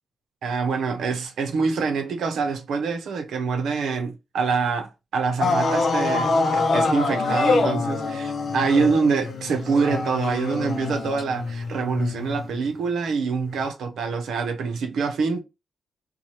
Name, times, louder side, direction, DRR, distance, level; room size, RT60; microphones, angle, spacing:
voice 1, 0.4-15.4, right 5 dB, 80° right, 0.7 m, -25 dB
sound 1, 5.4-12.6 13.6-13.7, left 3 dB, 60° left, 0.5 m, -25 dB
2.8 x 2.2 x 3.0 m
cardioid pair, 85°, 0 cm